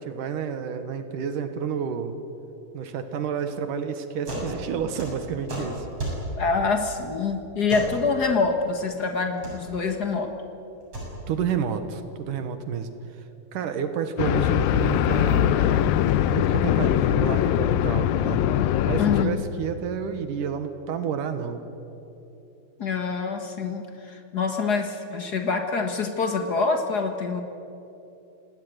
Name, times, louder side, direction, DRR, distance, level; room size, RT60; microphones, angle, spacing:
voice 1, 0.0-2.2 2.7-5.9 11.3-12.9 13.5-15.8 16.3-18.4 18.8-21.6, right 7 dB, 70° right, 9 dB, 2.7 m, -30 dB
sound 1, 4.3-4.5 4.8-6.2 7.7-7.9 9.2-9.5 10.8-11.1, right 1 dB, 40° right, 8.4 m, -32 dB
voice 2, 6.4-10.3 19.0-19.4 22.8-27.4, left 4 dB, 50° left, 5 dB, 1.2 m, -26 dB
sound 2, 14.2-19.3, left 10 dB, 85° left, 2.5 m, -22 dB
27.0 x 18.5 x 9.4 m, 2.9 s
omnidirectional pair, 4.1 m